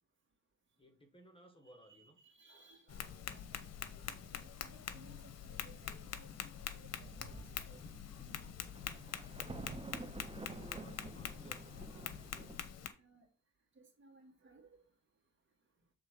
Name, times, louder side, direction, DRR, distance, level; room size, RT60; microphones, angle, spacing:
voice 1, 0.8-2.2 10.4-11.7, equal, 15° left, 1.4 m, -59 dB
voice 2, 1.6-8.0 8.3-8.4 9.8-10.6 13.0-13.3 13.8-14.8, right 2 dB, 40° right, 2.3 m, -63 dB
Tap, 2.9-12.9, left 9 dB, 55° left, 0.9 m, -45 dB
Thunder, 6.5-6.6 6.9-12.7, right 3 dB, 20° right, 0.7 m, -50 dB
7.5 x 3.7 x 5.0 m
cardioid pair, 90°, 30 cm